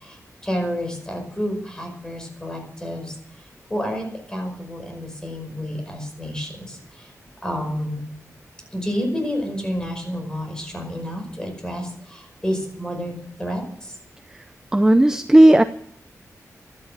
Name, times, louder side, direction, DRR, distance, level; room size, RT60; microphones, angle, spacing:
voice 1, 0.4-3.1 3.7-6.5 7.4-8.0 8.7-11.8 12.4-13.1 13.4-13.6, equal, 10° left, 3 dB, 5.3 m, -29 dB
voice 2, 14.7-15.6, right 1 dB, 10° right, 10 dB, 0.5 m, -13 dB
13.0 x 12.0 x 7.9 m, 0.66 s
wide cardioid pair, 160°, 6 cm